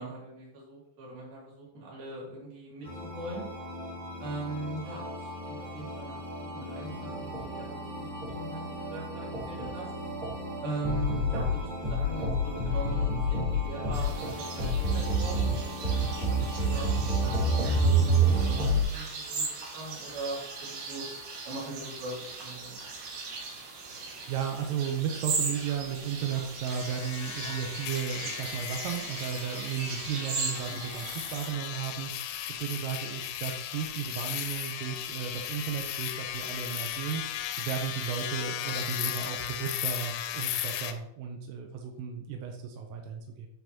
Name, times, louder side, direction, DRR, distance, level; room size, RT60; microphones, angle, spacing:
voice 1, 0.0-3.4 4.2-9.9 10.6-19.4 19.7-21.1 21.5-22.2 22.4-22.8 30.6-30.9, right 2 dB, 50° right, -5 dB, 4.0 m, -40 dB
sound 1, 2.8-18.8, right 1 dB, 25° right, 2.1 m, -30 dB
sound 2, 13.9-31.5, right 4 dB, 70° right, 4.1 m, -38 dB
voice 2, 24.0-43.5, right 8 dB, 85° right, 3 dB, 3.4 m, -34 dB
sound 3, 26.7-40.9, left 11 dB, 85° left, 2.7 m, -36 dB
9.5 x 5.6 x 3.0 m, 0.79 s
omnidirectional pair, 5.9 m